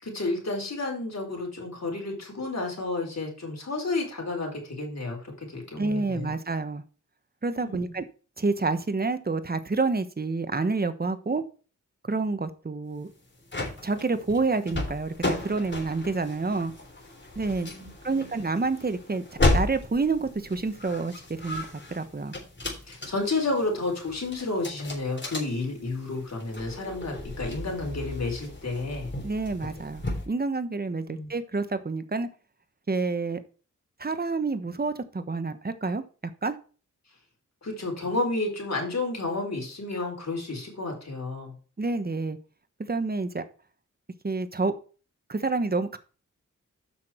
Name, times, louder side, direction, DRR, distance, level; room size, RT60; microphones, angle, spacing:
voice 1, 0.0-6.3 7.6-7.9 17.7-18.3 22.9-29.1 31.1-31.3 37.6-41.6, left 2 dB, 55° left, 4.4 m, -31 dB
voice 2, 5.8-6.8 7.4-8.1 8.4-11.4 12.0-13.1 13.8-16.7 17.3-17.7 18.0-19.2 19.5-21.1 21.4-22.3 29.2-32.3 32.9-33.4 34.0-36.0 36.4-36.6 41.8-42.4 42.9-43.4 44.2-44.7 45.3-46.0, right 3 dB, 30° right, 1.2 m, -28 dB
sound 1, 13.1-30.3, left 2 dB, 35° left, 3.5 m, -34 dB
8.4 x 6.1 x 4.5 m
wide cardioid pair, 65°, 31 cm